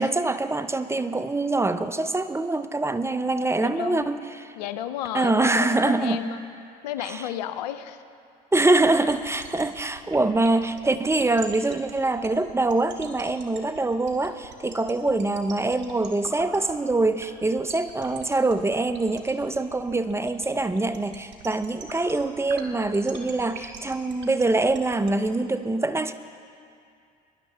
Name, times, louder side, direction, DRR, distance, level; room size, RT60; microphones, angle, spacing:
voice 1, 0.0-4.5 5.1-6.3 7.0-7.2 8.5-26.1, right 2 dB, 15° right, 11 dB, 0.6 m, -24 dB
voice 2, 3.6-4.2 4.6-6.4 6.8-8.0 15.0-15.2, left 11 dB, 85° left, 11 dB, 0.6 m, -33 dB
sound 1, 8.8-25.3, right 7 dB, 60° right, 1.7 m, -42 dB
22.0 x 11.0 x 3.4 m, 2.4 s
hypercardioid pair, 65°, 21 cm